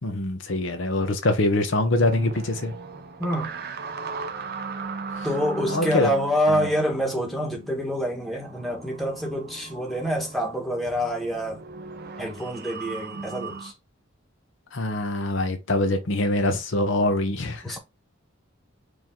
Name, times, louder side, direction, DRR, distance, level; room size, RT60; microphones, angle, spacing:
voice 1, 0.0-2.7 5.2-5.3 5.7-6.1 6.5-6.7 14.7-17.8, left 2 dB, 70° left, 0.9 m, -24 dB
sound 1, 2.0-13.7, right 4 dB, 50° right, 0.8 m, -38 dB
voice 2, 3.2-3.6 5.2-11.6 12.2-13.7 17.6-17.8, equal, ahead, 1.3 m, -27 dB
4.7 x 2.8 x 3.7 m
head